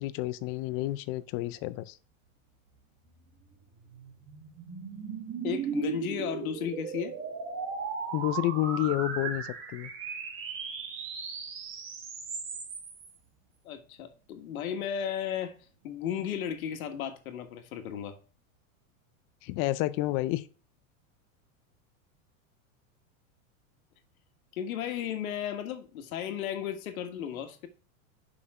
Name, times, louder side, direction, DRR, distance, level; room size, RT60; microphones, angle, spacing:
voice 1, 0.0-2.0 8.1-9.9 19.4-20.5, left 16 dB, 35° left, 0.4 m, -30 dB
sound 1, 3.4-13.1, right 6 dB, 30° right, 1.4 m, -37 dB
voice 2, 5.4-7.2 13.6-15.6 15.8-18.2 24.5-27.7, left 9 dB, 90° left, 1.5 m, -34 dB
6.6 x 5.7 x 4.8 m
supercardioid pair, 140°, 41 cm